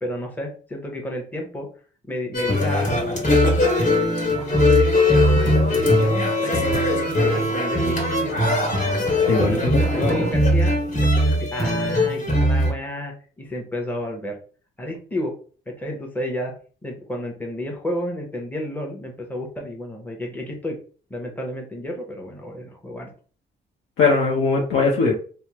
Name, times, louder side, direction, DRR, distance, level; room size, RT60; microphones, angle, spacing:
voice 1, 0.0-1.7 2.1-8.4 9.3-10.7 11.0-14.4 14.8-15.3 15.7-16.5 16.8-20.8 21.1-23.1, left 1 dB, 10° left, 1 dB, 0.9 m, -31 dB
sound 1, 2.3-12.7, left 1 dB, 45° left, 1.5 m, -20 dB
voice 2, 9.2-9.6 9.9-10.2 24.0-25.2, left 4 dB, 75° left, -2 dB, 0.8 m, -20 dB
3.3 x 2.1 x 2.9 m, 0.40 s
cardioid pair, 90°, 20 cm